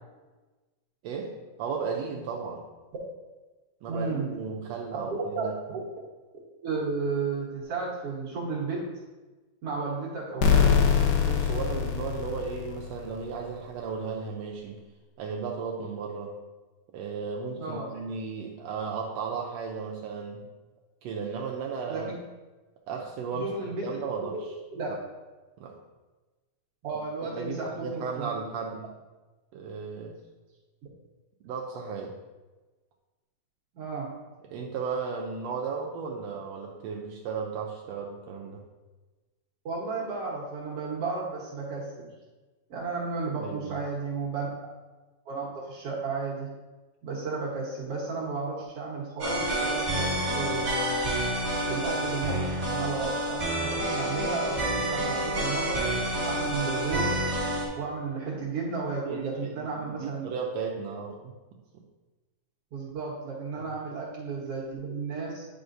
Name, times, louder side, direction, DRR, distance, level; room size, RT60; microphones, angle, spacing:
voice 1, 1.0-1.3 1.6-2.6 3.8-5.5 11.2-14.8 15.2-16.4 16.9-20.4 21.0-22.1 22.9-24.5 25.6-25.7 27.2-28.9 29.5-30.2 31.4-32.2 34.5-38.6 43.4-43.8 59.0-61.3 63.6-63.7, right 5 dB, 90° right, 0 dB, 1.5 m, -35 dB
voice 2, 3.9-4.3 5.1-5.5 6.6-8.9 9.6-10.8 17.6-17.9 21.9-22.1 23.3-23.8 24.3-24.4 24.7-24.9 26.8-28.3 33.7-34.1 39.6-42.1 42.7-44.5 45.2-46.5 47.0-51.1 51.6-55.8 56.3-57.2 57.7-60.3 62.7-65.5, right 4 dB, 60° right, -4 dB, 1.8 m, -33 dB
sound 1, 10.4-13.1, left 7 dB, 75° left, 1.6 m, -23 dB
sound 2, 49.2-57.7, right 1 dB, 15° right, 1.8 m, -28 dB
10.0 x 4.9 x 2.6 m, 1.2 s
omnidirectional pair, 3.7 m